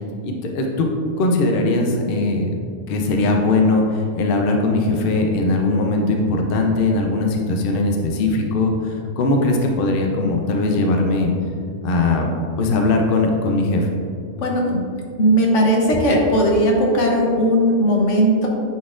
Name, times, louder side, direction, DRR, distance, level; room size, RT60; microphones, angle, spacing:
voice 1, 0.2-0.9 1.2-2.5 2.9-11.3 11.8-12.3 12.6-13.9, left 2 dB, 55° left, 2 dB, 0.7 m, -20 dB
voice 2, 14.4-14.8 15.2-18.5, equal, 80° left, -1 dB, 1.3 m, -17 dB
9.3 x 4.1 x 2.5 m, 2.4 s
omnidirectional pair, 1.2 m